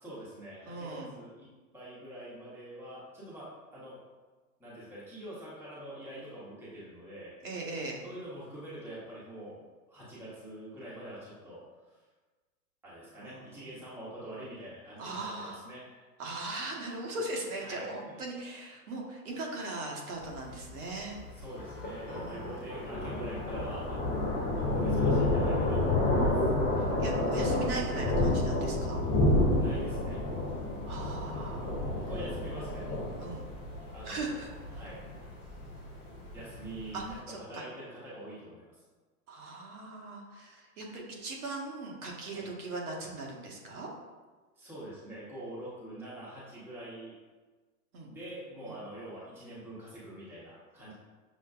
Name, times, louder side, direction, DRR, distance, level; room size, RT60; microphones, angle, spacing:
voice 1, 0.0-1.5 1.7-4.0 4.6-7.3 8.0-9.6 9.9-11.6 11.9-12.0 12.8-16.1 17.6-18.2 21.3-24.2 24.5-26.3 29.5-30.2 31.9-33.0 33.9-35.0 36.3-38.6 42.3-42.5 44.6-47.2 48.1-50.9, right 1 dB, 5° right, -9 dB, 0.9 m, -45 dB
voice 2, 0.7-1.1 7.4-8.0 13.1-13.5 15.0-15.6 16.2-21.2 22.1-22.7 26.8-29.0 30.8-31.8 33.2-33.5 34.0-34.5 36.9-37.6 39.3-43.9 47.9-48.1 48.7-48.8, right 2 dB, 70° right, -1 dB, 1.2 m, -39 dB
Thunder, 20.2-37.1, left 2 dB, 10° left, 0.4 m, -30 dB
6.5 x 2.2 x 2.4 m, 1.3 s
hypercardioid pair, 135°, 47 cm